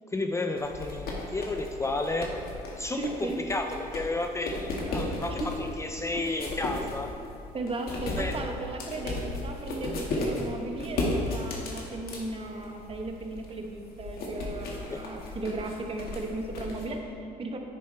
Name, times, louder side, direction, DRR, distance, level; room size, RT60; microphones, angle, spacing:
voice 1, 0.1-2.4 2.8-7.2 8.2-8.3 14.9-15.0, left 2 dB, 15° left, 4 dB, 0.5 m, -32 dB
sound 1, 0.6-16.9, left 2 dB, 65° left, 2.0 m, -35 dB
voice 2, 2.9-3.4 5.4-5.6 6.1-6.2 7.5-17.6, right 2 dB, 35° right, 2 dB, 1.2 m, -36 dB
10.5 x 9.5 x 3.4 m, 2.6 s
cardioid pair, 110°, 17 cm